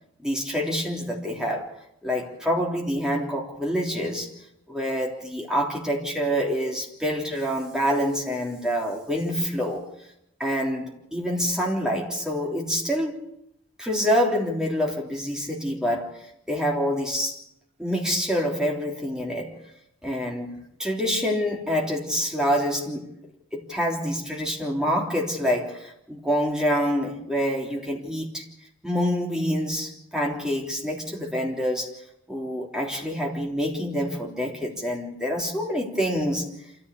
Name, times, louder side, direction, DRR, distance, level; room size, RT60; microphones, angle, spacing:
voice 1, 0.2-1.7 2.0-4.3 4.7-9.9 10.4-13.2 13.8-17.4 17.8-19.5 20.0-23.1 23.5-28.4 28.8-31.9 32.3-36.5, equal, 5° right, 3.5 m, -26 dB
27.0 x 15.0 x 8.4 m
head